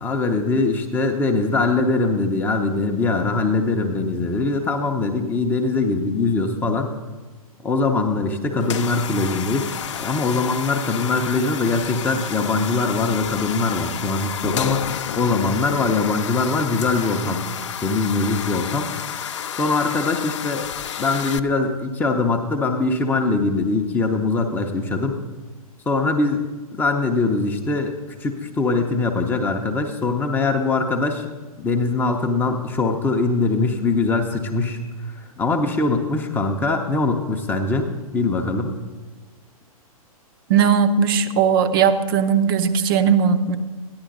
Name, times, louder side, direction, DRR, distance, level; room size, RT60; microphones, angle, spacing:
voice 1, 0.0-6.9 7.6-9.7 10.0-17.5 17.8-18.9 19.1-19.2 19.6-20.7 21.0-25.2 25.9-26.4 26.7-27.9 28.2-31.3 31.6-34.8 35.2-38.8, left 3 dB, 10° left, 3 dB, 0.7 m, -22 dB
sound 1, 8.6-21.4, left 9 dB, 55° left, 0.5 m, -30 dB
voice 2, 40.5-43.6, right 7 dB, 40° right, 10 dB, 0.7 m, -18 dB
14.0 x 10.5 x 3.9 m, 1.3 s
figure-of-eight pair, 115°, 19 cm